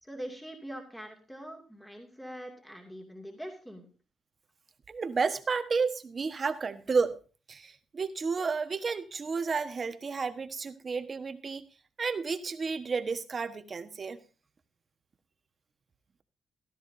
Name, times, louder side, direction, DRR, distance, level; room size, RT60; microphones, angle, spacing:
voice 1, 0.0-3.9, equal, 5° left, 1 dB, 2.4 m, -43 dB
voice 2, 4.9-7.2 7.5-11.6 12.0-14.2, right 5 dB, 40° right, 9 dB, 1.3 m, -31 dB
15.0 x 13.0 x 2.7 m, 0.35 s
cardioid pair, 90°, 0 cm